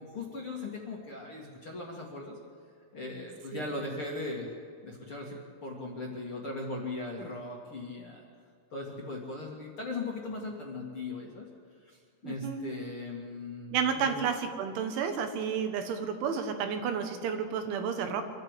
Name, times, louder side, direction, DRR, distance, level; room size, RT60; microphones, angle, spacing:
voice 1, 0.0-2.4 2.9-4.5 4.8-8.2 8.7-11.5 11.8-14.2, left 2 dB, 45° left, -2 dB, 2.0 m, -39 dB
voice 2, 12.2-12.6 13.7-18.2, right 7 dB, 80° right, 6 dB, 4.0 m, -31 dB
25.5 x 13.5 x 8.3 m, 2.3 s
omnidirectional pair, 5.4 m